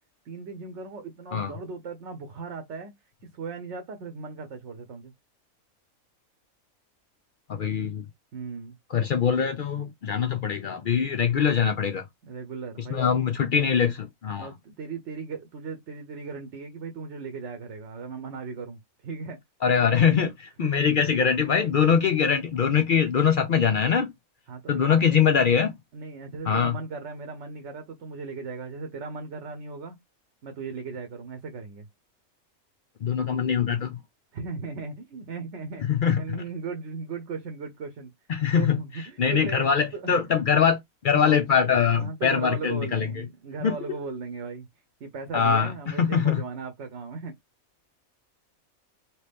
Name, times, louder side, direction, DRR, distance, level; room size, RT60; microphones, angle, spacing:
voice 1, 0.2-2.9 3.3-5.1 7.8-7.9 8.3-8.8 12.2-13.1 13.6-13.7 14.4-19.4 20.6-20.8 24.5-25.2 25.9-30.0 30.4-31.9 34.3-35.9 36.2-38.1 38.6-39.7 39.9-40.2 41.1-41.4 42.0-44.7 45.0-47.3, right 4 dB, 60° right, 1.0 m, -37 dB
voice 2, 7.5-8.0 8.9-12.0 12.9-14.5 19.6-24.1 24.7-25.7 26.5-26.8 33.0-34.0 35.9-36.4 38.3-38.8 39.2-40.8 41.0-43.1 43.6-43.7 45.3-46.4, left 7 dB, 85° left, 0.4 m, -23 dB
2.9 x 2.9 x 3.4 m
omnidirectional pair, 1.5 m